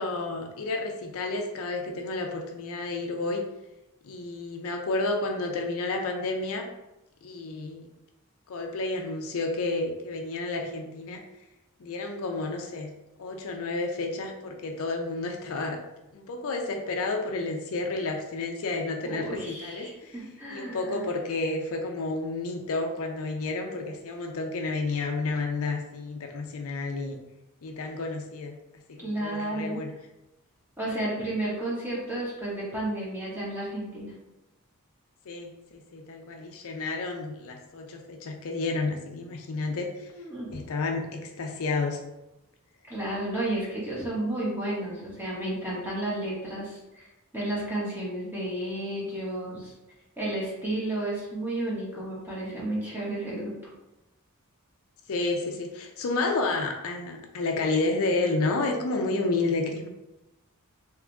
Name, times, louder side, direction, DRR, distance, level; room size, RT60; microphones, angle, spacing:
voice 1, 0.0-3.4 4.0-6.7 7.2-7.9 8.5-11.2 11.8-12.9 13.2-15.8 16.1-20.2 20.5-27.2 27.6-28.6 28.9-29.9 35.3-40.1 40.5-42.0 55.1-59.9, left 3 dB, 65° left, 3 dB, 0.5 m, -31 dB
voice 2, 19.0-21.1 29.0-29.8 30.8-34.1 40.1-40.6 42.9-47.0 47.3-49.7 50.2-53.5, right 1 dB, 10° right, -7 dB, 1.5 m, -32 dB
3.6 x 3.0 x 3.5 m, 0.95 s
head